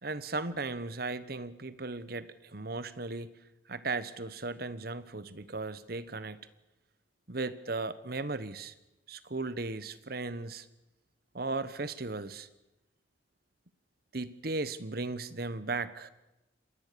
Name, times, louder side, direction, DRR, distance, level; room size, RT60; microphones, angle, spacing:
voice 1, 0.0-3.3 3.7-6.5 7.3-8.7 9.1-10.6 11.3-12.5 14.1-16.1, right 3 dB, 50° right, 15 dB, 1.2 m, -36 dB
26.5 x 21.0 x 6.9 m, 0.95 s
head